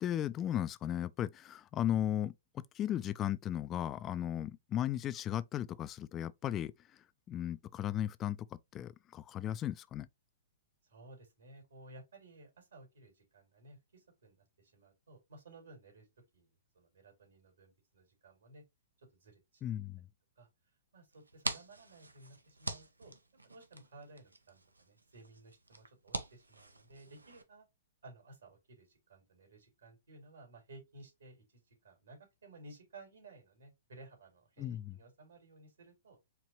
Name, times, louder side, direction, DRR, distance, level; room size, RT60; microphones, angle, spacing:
voice 1, 0.0-6.7 7.3-10.1 19.6-20.1 34.6-35.0, left 11 dB, 25° left, 0.3 m, -36 dB
voice 2, 10.8-16.1 16.3-18.6 19.0-19.7 20.4-20.5 20.9-23.1 23.4-27.7 28.0-36.2, right 2 dB, 70° right, 2.6 m, -56 dB
sound 1, 21.1-27.4, right 2 dB, 85° right, 0.7 m, -44 dB
4.5 x 3.0 x 2.9 m
figure-of-eight pair, 110°, 0 cm